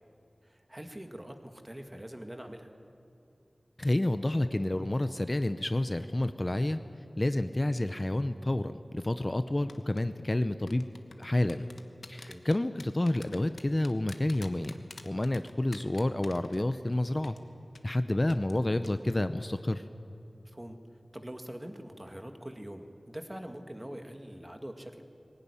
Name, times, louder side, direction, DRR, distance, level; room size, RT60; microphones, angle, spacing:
voice 1, 0.4-2.7 12.3-12.4 20.4-20.8 21.1-25.0, right 1 dB, 20° right, 5 dB, 2.0 m, -43 dB
voice 2, 3.8-6.8 7.2-10.9 11.2-11.7 12.1-14.8 15.0-17.4 17.8-19.8, left 1 dB, 30° left, 10 dB, 0.7 m, -29 dB
sound 1, 9.7-10.0 10.7-16.9 17.2-17.4 17.8-17.9 18.3-18.6 18.8-19.1 19.4-19.6, left 3 dB, 90° left, 1.2 m, -48 dB
20.5 x 17.5 x 9.9 m, 2.6 s
wide cardioid pair, 60°, 0 cm